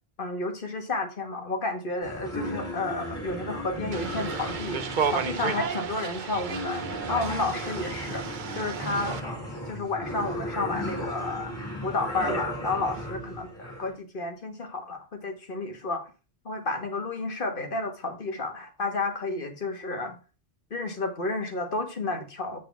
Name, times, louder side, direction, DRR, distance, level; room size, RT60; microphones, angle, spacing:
voice 1, 0.2-9.2 9.7-11.5 11.8-16.0 16.5-20.2 20.7-22.6, left 2 dB, 50° left, 4 dB, 2.0 m, -31 dB
sound 1, 2.0-13.9, equal, 25° left, 5.0 m, -35 dB
sound 2, 3.9-9.2, right 6 dB, 50° right, 0.8 m, -33 dB
8.4 x 6.8 x 3.5 m, 0.33 s
omnidirectional pair, 1.1 m